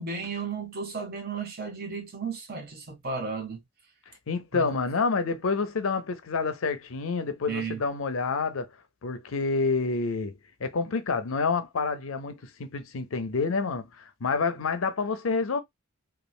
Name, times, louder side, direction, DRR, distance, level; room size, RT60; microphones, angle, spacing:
voice 1, 0.0-3.6 4.5-4.7 7.5-7.8, right 4 dB, 50° right, 1.1 m, -34 dB
voice 2, 4.3-8.7 9.0-15.6, left 4 dB, 85° left, 0.6 m, -28 dB
3.1 x 2.4 x 2.4 m
head